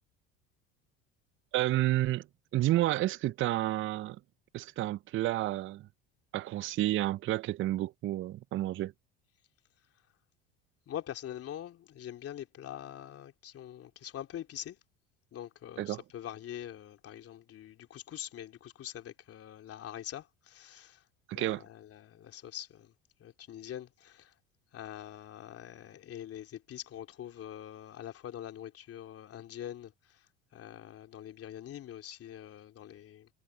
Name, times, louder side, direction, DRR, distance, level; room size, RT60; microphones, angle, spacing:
voice 1, 1.5-2.2 2.5-4.2 4.5-5.9 6.3-8.9 15.8-16.0 21.3-21.6, right 15 dB, 40° right, 0.6 m, -30 dB
voice 2, 10.9-14.8 15.3-21.0 21.3-22.9 23.2-24.3 24.7-29.9 30.5-33.3, left 11 dB, 45° left, 3.2 m, -44 dB
hypercardioid pair, 75°, 32 cm